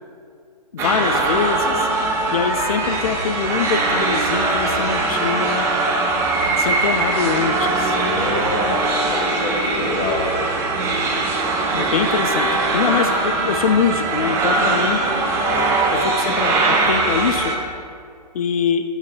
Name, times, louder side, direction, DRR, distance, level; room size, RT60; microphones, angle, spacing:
voice 1, 0.7-1.9 2.3-5.7 6.6-8.0 11.7-15.0 15.9-17.5 18.3-18.8, left 6 dB, 60° left, 8 dB, 0.4 m, -23 dB
sound 1, 0.8-17.6, right 3 dB, 10° right, 0.5 m, -21 dB
voice 2, 1.7-2.2 7.9-10.5 13.0-13.3 14.8-15.6, left 2 dB, 25° left, 0 dB, 0.8 m, -28 dB
6.3 x 3.2 x 5.6 m, 2.3 s
figure-of-eight pair, 130°, 21 cm